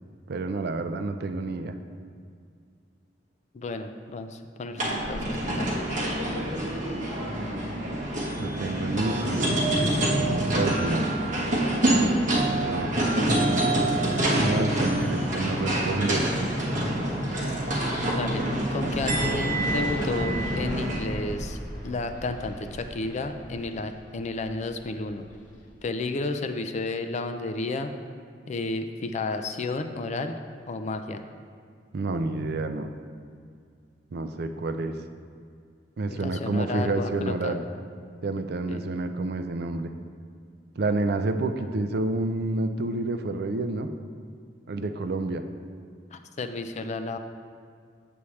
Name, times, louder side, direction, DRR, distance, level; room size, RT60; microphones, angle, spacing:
voice 1, 0.3-1.7 8.4-9.7 10.5-11.1 12.6-12.9 14.4-16.2 31.9-32.9 34.1-35.0 36.0-37.6 38.2-39.9 40.8-43.9 44.7-45.4, right 2 dB, 60° right, 8 dB, 0.4 m, -29 dB
voice 2, 3.5-5.9 18.1-18.4 18.7-21.6 21.8-25.2 25.8-27.9 28.5-30.4 30.7-31.2 36.1-37.6 38.7-38.9 46.1-47.2, left 3 dB, 40° left, 7 dB, 0.4 m, -32 dB
sound 1, 4.8-21.0, right 1 dB, 45° right, 1.3 m, -26 dB
sound 2, 18.8-25.8, equal, 20° left, 1.3 m, -39 dB
8.3 x 7.0 x 3.2 m, 2.2 s
head